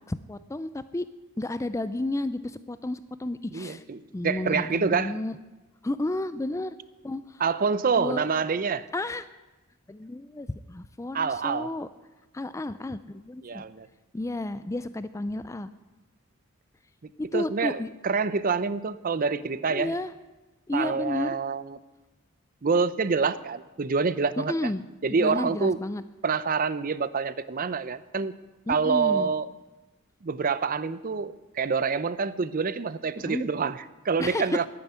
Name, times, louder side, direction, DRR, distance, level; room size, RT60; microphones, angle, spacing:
voice 1, 0.1-1.1 1.4-3.8 4.1-5.4 5.8-6.7 7.0-7.4 8.0-8.3 8.5-8.6 8.9-9.3 9.9-11.9 12.3-13.6 14.1-15.7 17.2-17.9 19.7-20.1 20.7-21.4 24.4-24.8 25.1-26.0 28.7-29.3 33.2-33.5 34.2-34.5, left 2 dB, 15° left, 14 dB, 0.3 m, -32 dB
voice 2, 3.5-5.2 7.4-8.9 11.1-11.7 13.4-13.9 17.3-20.0 20.7-21.8 22.6-24.7 25.0-25.8 26.2-28.3 28.7-29.5 30.2-34.7, right 5 dB, 40° right, 16 dB, 0.5 m, -27 dB
10.5 x 9.8 x 9.4 m, 1.1 s
head